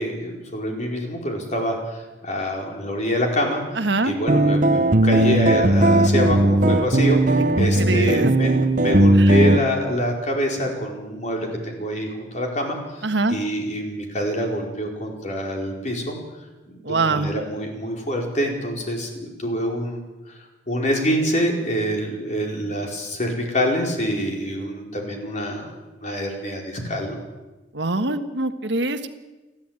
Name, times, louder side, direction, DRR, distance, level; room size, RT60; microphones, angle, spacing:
voice 1, 0.0-3.6 4.0-13.0 13.3-16.2 16.9-20.0 20.7-25.7 26.0-27.2, equal, 40° left, 1 dB, 4.8 m, -26 dB
voice 2, 3.8-4.2 7.6-8.3 9.1-9.3 13.0-13.4 16.8-17.3 27.7-29.1, right 3 dB, 75° right, 8 dB, 1.5 m, -24 dB
sound 1, 4.3-9.6, right 1 dB, 45° right, 1.1 m, -17 dB
29.0 x 11.5 x 9.1 m, 1.1 s
head